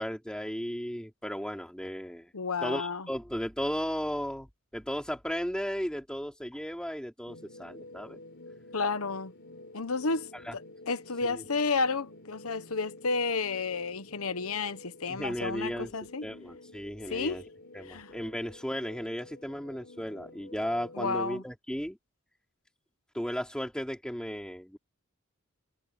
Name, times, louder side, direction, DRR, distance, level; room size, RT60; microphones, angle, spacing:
voice 1, 0.0-2.3 2.6-4.5 4.7-8.2 10.4-10.5 11.3-11.4 15.1-17.4 17.7-22.0 23.1-24.8, equal, 5° left, 4.4 m, -35 dB
voice 2, 2.3-3.1 8.7-9.3 9.7-16.3 17.1-17.5 17.9-18.1 20.9-21.4, left 4 dB, 85° left, 1.2 m, -31 dB
sound 1, 7.3-21.3, left 2 dB, 55° left, 4.2 m, -50 dB
head